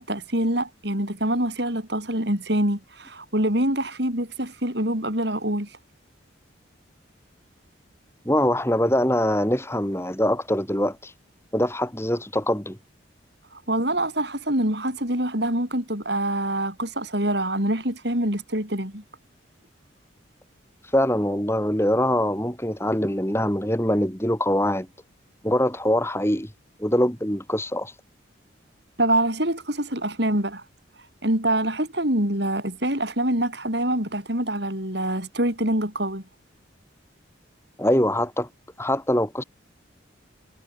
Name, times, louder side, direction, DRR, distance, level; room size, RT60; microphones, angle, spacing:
voice 1, 0.0-5.7 13.5-19.0 29.0-30.6 31.2-36.2, right 1 dB, 55° right, 7.4 m, -25 dB
voice 2, 8.3-11.1 11.5-12.8 20.9-24.9 25.4-26.5 26.8-27.9 37.8-38.5 38.8-39.4, left 1 dB, 15° left, 5.8 m, -23 dB
head